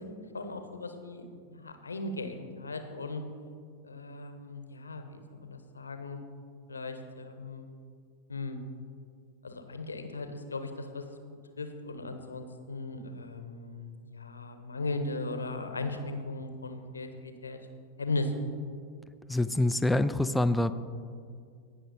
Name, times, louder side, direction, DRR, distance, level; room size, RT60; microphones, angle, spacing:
voice 1, 0.0-3.2 3.8-6.2 6.7-7.7 8.3-8.6 9.4-11.1 11.6-17.6 18.0-18.3, left 2 dB, 75° left, 7 dB, 0.9 m, -37 dB
voice 2, 19.3-20.7, left 1 dB, 5° left, 12 dB, 0.4 m, -26 dB
18.0 x 6.2 x 4.2 m, 2.2 s
figure-of-eight pair, 90°, 0 cm